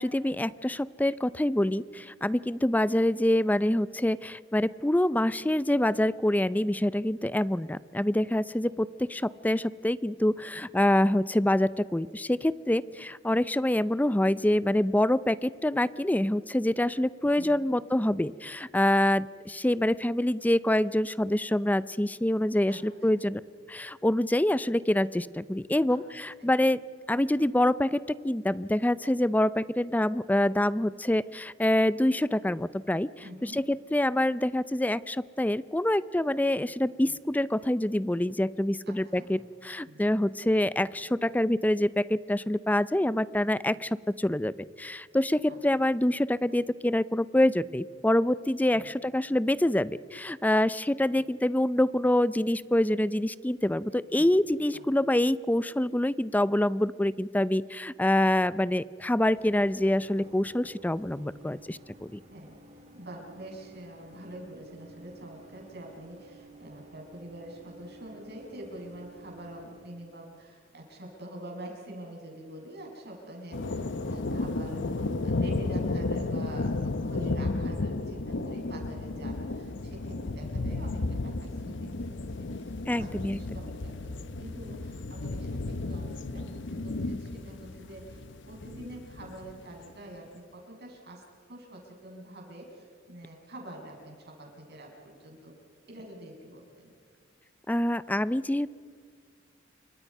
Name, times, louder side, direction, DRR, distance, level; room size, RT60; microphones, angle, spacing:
voice 1, 0.0-23.4 23.7-26.8 27.1-33.1 33.4-44.5 44.8-62.2 82.9-83.4 97.7-98.7, left 1 dB, 10° left, 17 dB, 0.5 m, -26 dB
voice 2, 17.3-17.7 22.7-23.2 25.9-26.0 26.4-26.5 33.2-33.6 37.1-37.2 38.9-39.3 39.9-40.0 45.5-45.6 48.7-48.9 54.2-54.4 54.7-54.8 58.2-58.3 62.3-62.6 62.9-91.2 91.5-95.6 95.8-96.9, right 1 dB, 55° right, 0 dB, 7.2 m, -46 dB
sound 1, 59.3-69.9, right 2 dB, 35° right, 3.0 m, -53 dB
sound 2, 73.5-89.6, left 2 dB, 65° left, 0.9 m, -33 dB
29.0 x 24.5 x 5.5 m, 2.2 s
head